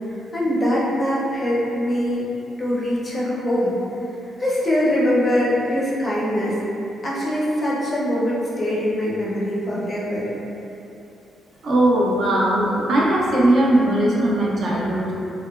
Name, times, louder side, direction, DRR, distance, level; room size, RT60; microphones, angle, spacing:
voice 1, 0.3-2.3 2.6-3.7 4.4-6.6 7.0-10.3, equal, 25° left, -6 dB, 0.4 m, -22 dB
voice 2, 11.6-15.1, right 1 dB, 50° right, -5 dB, 0.4 m, -19 dB
2.8 x 2.1 x 2.2 m, 2.8 s
cardioid pair, 155°, 0 cm